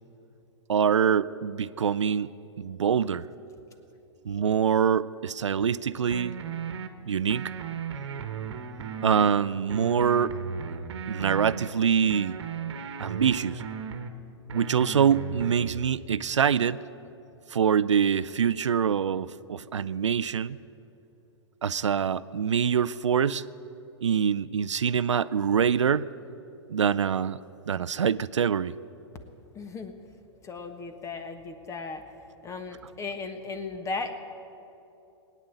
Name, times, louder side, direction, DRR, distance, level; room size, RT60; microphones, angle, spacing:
voice 1, 0.7-3.2 4.2-6.4 7.0-7.5 9.0-10.3 11.1-12.3 13.0-13.6 14.5-16.8 17.5-20.6 21.6-23.4 24.0-26.1 26.7-27.4 27.7-28.7, right 7 dB, 90° right, 16 dB, 0.4 m, -25 dB
sound 1, 6.1-6.9 7.3-9.3 9.7-11.7 12.1-14.1 14.5-15.7, right 6 dB, 65° right, 1.2 m, -36 dB
voice 2, 29.5-29.9 30.4-32.0 32.4-34.1, left 4 dB, 20° left, 8 dB, 1.3 m, -36 dB
19.0 x 9.3 x 8.2 m, 2.9 s
hypercardioid pair, 115°, 15 cm